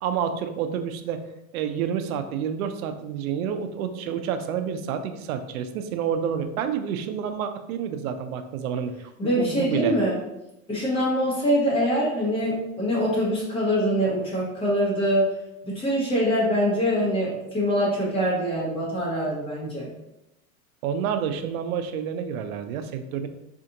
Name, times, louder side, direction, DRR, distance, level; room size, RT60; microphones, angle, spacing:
voice 1, 0.0-10.0 20.8-23.3, right 8 dB, 75° right, 8 dB, 0.6 m, -29 dB
voice 2, 9.2-10.2 10.7-15.3 15.6-19.9, equal, 15° left, -6 dB, 1.1 m, -24 dB
4.3 x 2.4 x 2.8 m, 0.87 s
supercardioid pair, 145°, 43 cm